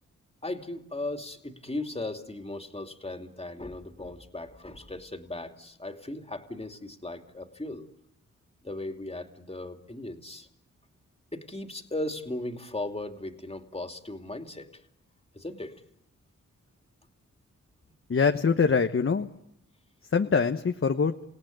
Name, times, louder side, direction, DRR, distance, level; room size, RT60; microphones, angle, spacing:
voice 1, 0.4-7.9 8.6-10.5 11.3-14.8 15.3-15.8, left 2 dB, 20° left, 6 dB, 2.8 m, -37 dB
voice 2, 18.1-19.3 20.1-21.1, left 5 dB, 40° left, 6 dB, 1.2 m, -23 dB
28.5 x 17.5 x 9.3 m, 0.82 s
cardioid pair, 50°, 32 cm